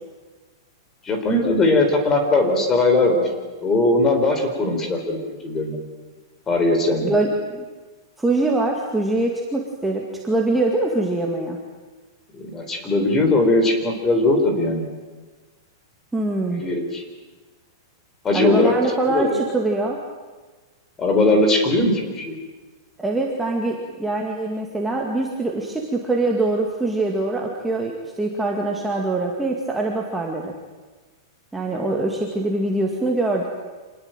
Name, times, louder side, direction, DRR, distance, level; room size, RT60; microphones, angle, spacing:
voice 1, 1.0-3.3 3.6-5.8 6.5-7.1 12.3-14.9 16.5-17.0 18.2-18.8 19.1-19.4 21.0-22.4, left 2 dB, 15° left, 4 dB, 4.2 m, -19 dB
voice 2, 7.0-7.7 8.2-11.6 16.1-16.7 18.3-20.0 23.0-30.5 31.5-33.5, right 2 dB, 5° right, -1 dB, 2.1 m, -23 dB
27.0 x 20.0 x 9.1 m, 1.3 s
supercardioid pair, 165°, 2 cm